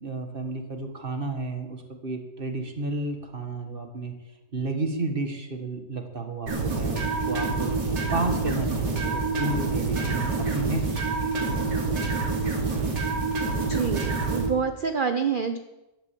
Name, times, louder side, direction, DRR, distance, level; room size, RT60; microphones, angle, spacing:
voice 1, 0.0-4.1 4.5-7.7 8.1-12.1, right 3 dB, 30° right, 5 dB, 1.7 m, -32 dB
sound 1, 6.5-14.5, right 3 dB, 70° right, 3.2 m, -27 dB
voice 2, 13.6-15.6, right 6 dB, 50° right, 8 dB, 0.6 m, -27 dB
12.0 x 11.5 x 7.4 m, 1.0 s
omnidirectional pair, 1.9 m